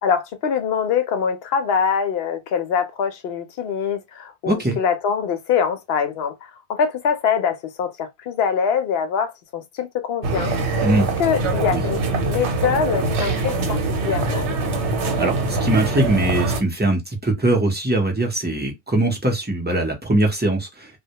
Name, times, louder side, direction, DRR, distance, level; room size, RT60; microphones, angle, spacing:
voice 1, 0.0-10.5 11.2-14.5, left 7 dB, 65° left, 0.8 m, -24 dB
voice 2, 4.5-4.8 10.8-11.1 11.7-11.8 15.2-21.0, right 1 dB, 10° right, 0.5 m, -21 dB
sound 1, 10.2-16.6, right 3 dB, 80° right, 0.9 m, -23 dB
2.1 x 2.1 x 2.8 m
omnidirectional pair, 1.1 m